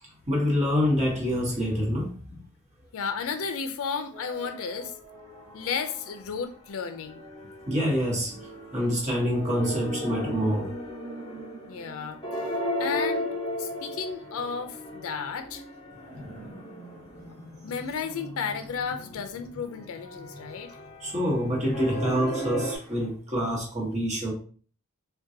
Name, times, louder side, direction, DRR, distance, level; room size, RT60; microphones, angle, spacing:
voice 1, 0.3-2.4 7.7-8.5 8.7-10.7 16.1-16.5 21.0-24.3, equal, 30° right, -2 dB, 1.0 m, -26 dB
voice 2, 2.9-4.9 5.5-7.2 11.7-12.2 12.8-13.3 13.6-15.6 17.6-20.8, left 6 dB, 65° left, 7 dB, 0.4 m, -33 dB
sound 1, 4.1-6.3 6.6-22.8, equal, 20° left, 0.8 m, -36 dB
3.8 x 2.2 x 2.6 m, 0.42 s
head